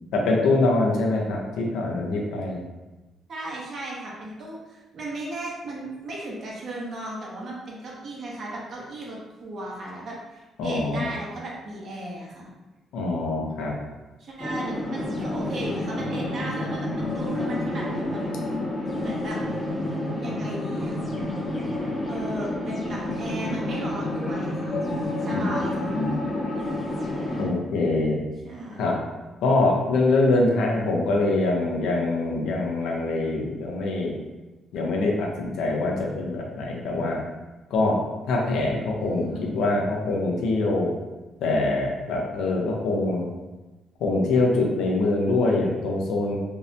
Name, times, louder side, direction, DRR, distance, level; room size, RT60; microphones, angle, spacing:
voice 1, 0.1-2.6 10.6-11.1 12.9-13.7 25.3-25.5 25.9-26.2 27.4-28.2 28.8-28.9 29.4-34.2 34.7-37.2 37.7-38.0 38.3-40.9 41.4-43.3 44.0-46.4, left 2 dB, 85° left, -1 dB, 0.5 m, -24 dB
voice 2, 3.3-12.5 14.2-18.2 19.0-19.4 20.2-21.0 22.1-24.8 25.2-25.9 28.4-28.9 39.0-39.5, right 1 dB, 55° right, -4 dB, 0.6 m, -35 dB
sound 1, 14.4-27.5, left 1 dB, 25° left, 0.6 m, -29 dB
2.6 x 2.1 x 2.6 m, 1.1 s
cardioid pair, 90°, 0 cm